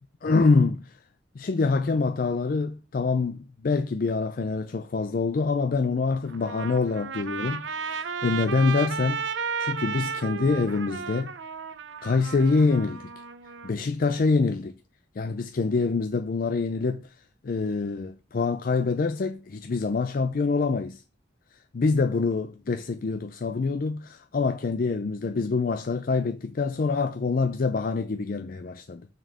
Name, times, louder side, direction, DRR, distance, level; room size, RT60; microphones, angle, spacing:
voice 1, 0.2-1.0 1.4-9.2 9.6-11.3 12.0-13.1 13.6-14.7 15.2-17.1 17.4-21.0 21.7-29.1, left 4 dB, 45° left, 0.4 m, -25 dB
Trumpet, 6.3-13.7, right 6 dB, 70° right, 0.6 m, -34 dB
6.3 x 4.4 x 6.1 m
head